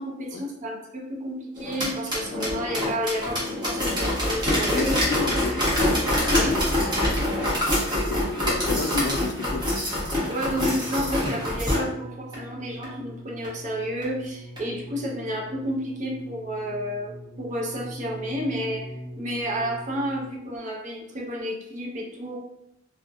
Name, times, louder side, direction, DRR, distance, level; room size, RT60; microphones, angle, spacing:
voice 1, 0.0-4.9 6.3-6.7 10.3-18.8 19.2-22.4, equal, 40° right, 0 dB, 0.5 m, -31 dB
sound 1, 1.6-11.8 12.3-12.4 12.8-12.9 13.4-13.5 14.0-14.1 14.6-14.7, left 1 dB, 25° right, 0.9 m, -25 dB
voice 2, 4.6-5.7 8.0-9.7, left 4 dB, 60° left, 5 dB, 0.3 m, -30 dB
sound 2, 10.4-20.6 21.4-21.5, equal, 90° right, 0.7 m, -42 dB
2.6 x 2.0 x 2.5 m, 0.85 s
head